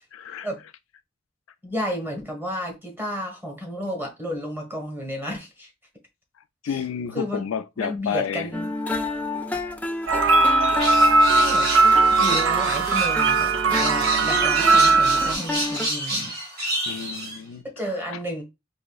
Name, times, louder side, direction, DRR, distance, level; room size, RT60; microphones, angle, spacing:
voice 1, 0.1-0.5 6.6-8.5 16.9-17.6 18.1-18.2, left 7 dB, 85° left, 0.4 m, -30 dB
voice 2, 1.6-5.7 6.6-6.8 7.1-7.5 7.8-8.7 10.1-10.2 11.3-11.7 12.2-16.3 17.6-18.4, equal, 10° right, 1.2 m, -32 dB
sound 1, 8.5-15.9, left 2 dB, 10° left, 0.4 m, -31 dB
sound 2, 10.1-15.3, right 3 dB, 75° right, 0.5 m, -19 dB
sound 3, 10.8-17.4, right 1 dB, 55° right, 2.1 m, -29 dB
4.9 x 2.7 x 2.3 m
head